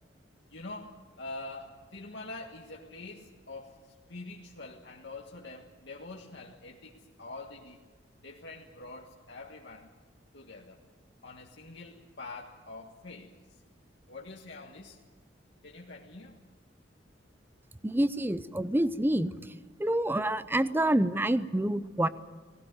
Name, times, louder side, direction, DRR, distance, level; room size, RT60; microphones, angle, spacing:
voice 1, 0.5-7.8 8.2-9.9 10.3-10.8 11.2-13.4 14.1-15.0 15.6-16.4, left 2 dB, 65° left, -1 dB, 1.6 m, -45 dB
voice 2, 17.8-19.5 19.8-22.1, right 1 dB, 10° right, 14 dB, 0.7 m, -27 dB
19.0 x 17.5 x 9.5 m, 1.4 s
head